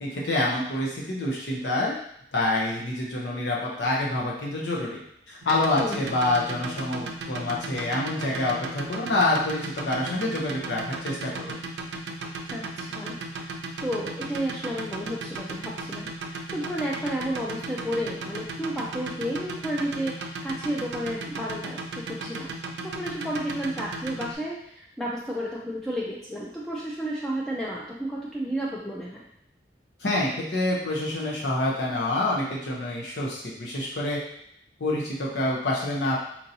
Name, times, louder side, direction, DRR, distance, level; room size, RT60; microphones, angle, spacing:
voice 1, 0.0-2.0 2.3-5.0 5.3-11.6 30.0-34.2 34.8-36.2, left 2 dB, 70° left, -3 dB, 0.7 m, -27 dB
sound 1, 5.4-24.3, right 3 dB, 75° right, 0.5 m, -35 dB
voice 2, 12.5-13.5 13.8-22.5 22.8-29.2, equal, 5° left, -6 dB, 0.4 m, -32 dB
4.4 x 2.7 x 2.7 m, 0.73 s
head